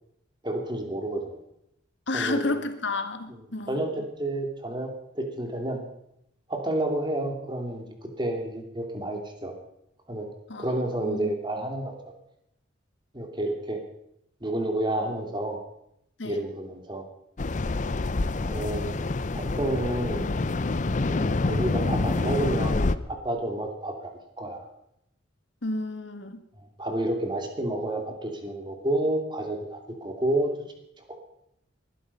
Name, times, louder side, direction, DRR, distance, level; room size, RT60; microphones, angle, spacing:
voice 1, 0.4-1.4 2.1-2.4 3.3-3.4 3.7-5.8 6.5-7.8 8.2-9.5 10.1-10.3 10.6-11.9 13.1-13.8 14.4-15.6 16.2-17.0 18.4-18.9 19.3-20.2 21.1-24.1 24.4-24.7 26.8-30.5 31.1-31.2, right 1 dB, 25° right, 3 dB, 2.6 m, -30 dB
voice 2, 2.1-3.8 10.5-10.7 11.0-11.3 16.2-16.4 25.6-26.4, left 2 dB, 65° left, 9 dB, 1.6 m, -31 dB
sound 1, 17.4-23.0, left 3 dB, 40° left, 0.6 m, -27 dB
20.5 x 12.0 x 5.5 m, 0.78 s
head